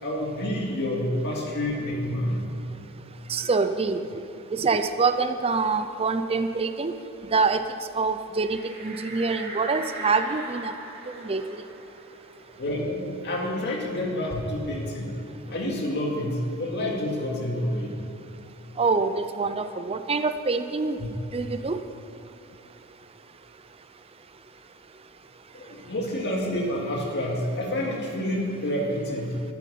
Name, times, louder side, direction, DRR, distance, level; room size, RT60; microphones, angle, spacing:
voice 1, 0.0-2.5 12.6-15.1 15.5-17.9 21.0-21.1 25.5-29.4, left 1 dB, 50° left, -2 dB, 2.4 m, -28 dB
voice 2, 3.3-4.1 4.5-6.9 7.3-7.6 7.9-10.7 11.1-11.6 18.8-21.0 21.3-21.8, right 4 dB, 25° right, 9 dB, 0.5 m, -25 dB
sound 1, 8.4-13.6 14.0-14.1 14.4-16.1, right 2 dB, 45° right, 2.5 m, -41 dB
13.0 x 9.5 x 8.5 m, 2.8 s
head